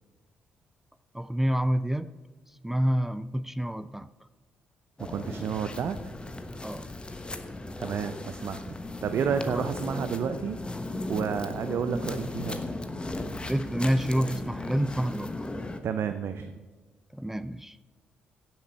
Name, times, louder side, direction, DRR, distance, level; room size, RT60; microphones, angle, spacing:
voice 1, 1.1-2.1 2.6-4.1 6.6-6.9 9.5-9.7 13.5-15.3 17.1-17.8, equal, 5° right, 0.4 m, -28 dB
sound 1, 5.0-15.8, left 2 dB, 20° left, 1.2 m, -36 dB
voice 2, 5.1-6.0 7.8-8.8 9.0-10.6 11.1-12.6 15.8-16.6, right 7 dB, 55° right, 0.6 m, -30 dB
17.0 x 7.4 x 4.5 m
figure-of-eight pair, 40°, 5 cm